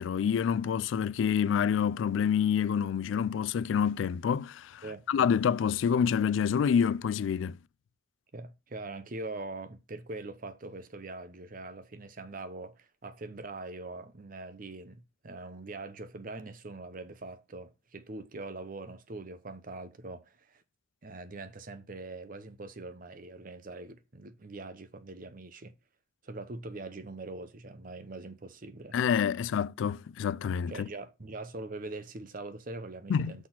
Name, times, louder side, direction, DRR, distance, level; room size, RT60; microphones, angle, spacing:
voice 1, 0.0-7.6 28.9-30.9 33.1-33.4, left 7 dB, 80° left, 0.3 m, -27 dB
voice 2, 8.3-20.6 21.0-25.7 26.2-29.0 30.7-33.5, right 2 dB, 45° right, 0.8 m, -42 dB
5.9 x 4.2 x 5.9 m
head